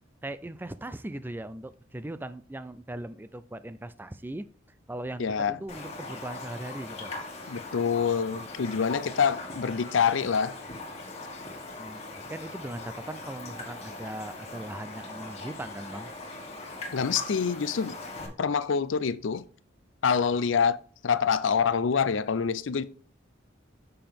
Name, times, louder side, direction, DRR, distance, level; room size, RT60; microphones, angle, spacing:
voice 1, 0.2-4.5 4.9-7.1 11.8-16.1 18.3-18.4, right 1 dB, 10° right, 0.4 m, -39 dB
voice 2, 5.2-5.6 7.5-10.5 16.9-18.0 18.4-19.4 20.0-20.8 21.0-22.8, left 6 dB, 80° left, 0.5 m, -26 dB
Raindrop, 5.7-18.3, left 2 dB, 35° left, 1.6 m, -40 dB
6.7 x 5.8 x 3.5 m
head